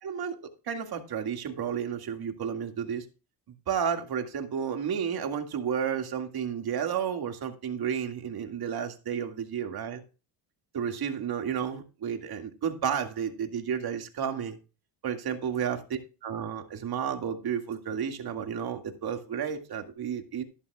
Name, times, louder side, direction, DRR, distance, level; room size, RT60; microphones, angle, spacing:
voice 1, 0.0-0.4 0.7-3.0 3.7-10.0 10.7-14.6 15.0-20.4, right 8 dB, 50° right, 2.2 m, -32 dB
12.0 x 11.5 x 2.4 m
supercardioid pair, 85°, 48 cm